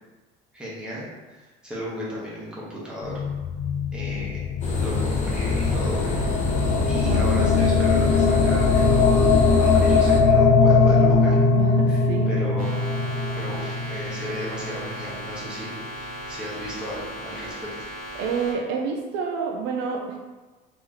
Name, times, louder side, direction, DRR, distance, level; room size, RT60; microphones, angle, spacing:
voice 1, 0.5-3.2 3.9-4.4 4.8-6.0 6.9-11.4 11.9-12.0 12.3-12.8 13.3-17.7, equal, 5° right, -7 dB, 1.1 m, -35 dB
sound 1, 3.0-15.3, left 4 dB, 55° left, 0.5 m, -21 dB
sound 2, 4.6-10.2, left 2 dB, 35° left, 0.8 m, -27 dB
voice 2, 7.0-7.4 11.5-12.3 18.1-20.2, right 5 dB, 65° right, 1 dB, 0.5 m, -29 dB
sound 3, 12.6-18.5, equal, 40° right, 1.1 m, -37 dB
3.1 x 2.9 x 3.8 m, 1.2 s
cardioid pair, 140°, 20 cm